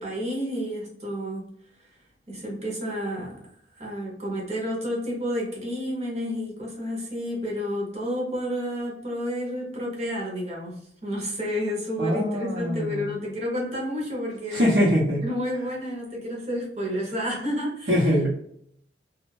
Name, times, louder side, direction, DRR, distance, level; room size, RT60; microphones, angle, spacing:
voice 1, 0.0-1.4 2.3-3.4 3.8-14.8 15.2-18.1, equal, 35° right, -2 dB, 0.9 m, -30 dB
voice 2, 12.0-13.1 14.5-15.2 17.9-18.3, equal, 70° right, -8 dB, 0.9 m, -22 dB
2.5 x 2.4 x 3.1 m, 0.69 s
head